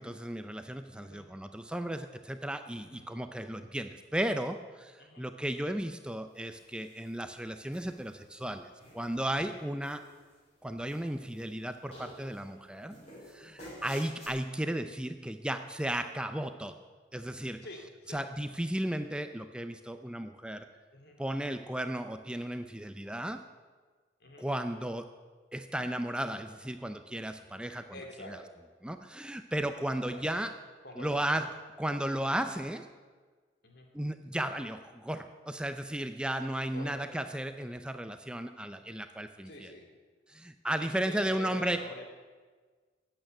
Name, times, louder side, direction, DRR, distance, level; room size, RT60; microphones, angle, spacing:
voice 1, 0.0-10.0 10.6-13.0 13.3-16.7 17.1-17.6 18.1-20.7 21.2-23.4 24.4-25.1 25.5-27.9 28.2-28.4 28.8-30.5 31.0-31.5 31.8-32.9 33.9-39.7 40.3-41.8, right 1 dB, 5° right, 8 dB, 0.6 m, -35 dB
sound 1, 6.5-7.1 7.7-8.4 8.8-9.4 9.8-10.6 10.8-11.6 11.9-12.4 12.9-14.3, equal, 35° left, 6.1 m, -51 dB
voice 2, 17.6-18.2 20.9-21.2 24.2-24.5 27.9-28.5 30.1-30.2 30.8-31.4 33.6-33.9 36.7-37.2 39.5-39.9 40.8-42.0, left 1 dB, 60° left, 3 dB, 2.8 m, -47 dB
14.5 x 9.1 x 9.3 m, 1.5 s
head